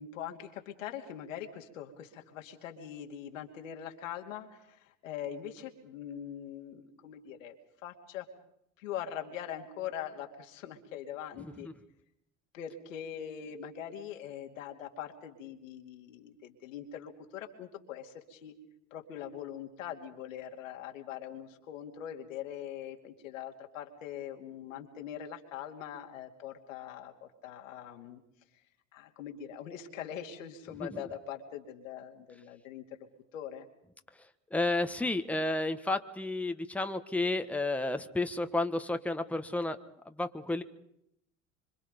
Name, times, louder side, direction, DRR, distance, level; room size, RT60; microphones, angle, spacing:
voice 1, 0.0-7.5 7.8-8.2 8.8-11.7 12.5-18.5 18.9-28.2 28.9-33.0 33.3-33.7, left 9 dB, 85° left, 4 dB, 2.5 m, -42 dB
voice 2, 34.5-39.8 40.0-40.6, left 2 dB, 5° left, 7 dB, 1.4 m, -31 dB
25.5 x 25.5 x 5.3 m, 0.76 s
hypercardioid pair, 75°, 38 cm